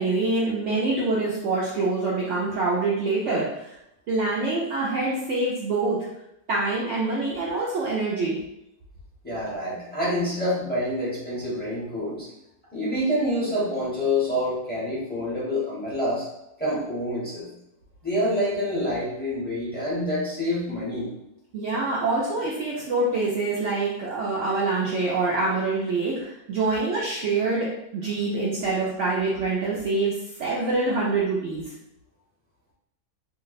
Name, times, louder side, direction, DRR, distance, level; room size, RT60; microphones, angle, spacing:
voice 1, 0.0-3.8 4.1-6.0 6.5-8.4 21.5-27.7 27.9-31.7, right 3 dB, 65° right, -5 dB, 0.8 m, -25 dB
voice 2, 9.2-12.3 12.7-16.3 16.6-17.5 18.0-21.1, left 1 dB, 5° left, -9 dB, 1.0 m, -27 dB
2.6 x 2.1 x 3.9 m, 0.84 s
omnidirectional pair, 1.6 m